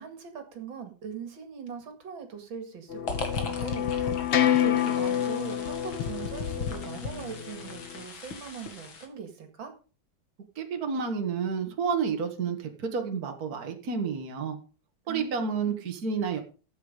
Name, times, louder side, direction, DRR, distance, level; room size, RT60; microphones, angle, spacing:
voice 1, 0.0-4.1 4.4-9.7 15.1-15.9, right 7 dB, 80° right, 6 dB, 2.8 m, -41 dB
sound 1, 2.9-8.0, left 11 dB, 70° left, 0.6 m, -28 dB
sound 2, 3.1-9.1, left 5 dB, 90° left, 2.8 m, -37 dB
voice 2, 10.6-14.6 15.1-16.4, right 5 dB, 50° right, 4 dB, 2.1 m, -30 dB
14.0 x 8.2 x 5.1 m, 0.36 s
omnidirectional pair, 2.1 m